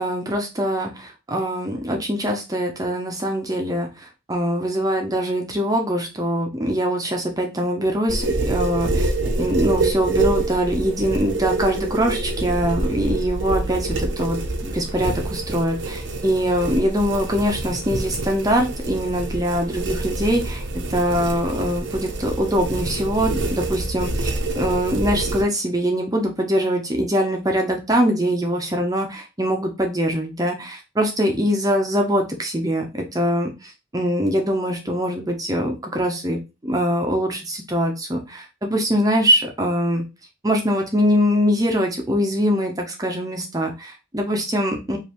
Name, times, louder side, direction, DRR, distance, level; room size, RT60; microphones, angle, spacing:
voice 1, 0.0-9.1 9.4-20.6 20.9-40.0 40.4-45.0, equal, 20° right, 2 dB, 0.7 m, -23 dB
sound 1, 8.1-25.4, right 2 dB, 75° right, 0.7 m, -26 dB
5.2 x 2.7 x 3.0 m, 0.27 s
head